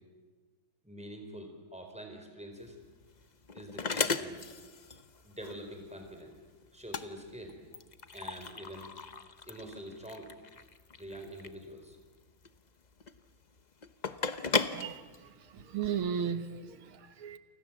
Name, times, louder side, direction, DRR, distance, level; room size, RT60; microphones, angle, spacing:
voice 1, 0.8-2.8 3.5-4.5 5.2-6.4 6.7-7.6 8.1-8.9 9.4-10.3 11.0-12.0 15.3-15.7, right 1 dB, 5° right, 4 dB, 4.5 m, -46 dB
sound 1, 2.6-15.9, left 5 dB, 90° left, 0.3 m, -37 dB
voice 2, 15.5-17.4, right 7 dB, 85° right, 10 dB, 2.3 m, -35 dB
29.5 x 25.5 x 7.6 m, 1.3 s
omnidirectional pair, 2.3 m